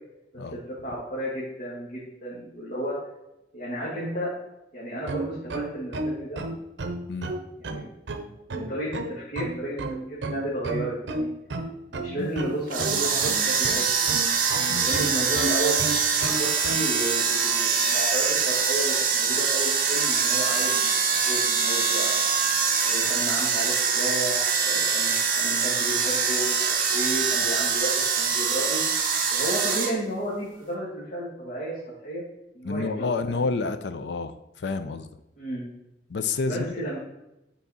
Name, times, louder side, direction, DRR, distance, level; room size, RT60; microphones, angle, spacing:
voice 1, 0.3-2.9 3.5-4.3 4.7-6.4 7.6-7.9 8.5-9.8 10.1-11.3 11.9-14.1 14.7-15.9 16.3-22.3 22.8-28.8 29.3-31.8 32.0-32.2 32.5-33.4 35.4-35.7 36.5-37.0, right 1 dB, 45° left, -7 dB, 1.6 m, -32 dB
sound 1, 5.0-16.9, right 2 dB, 80° right, 0.6 m, -32 dB
sound 2, 12.7-29.9, right 6 dB, 50° right, 0.9 m, -24 dB
voice 2, 32.6-35.1 36.1-36.8, left 4 dB, 70° left, 10 dB, 0.5 m, -29 dB
8.5 x 4.0 x 4.0 m, 0.90 s
head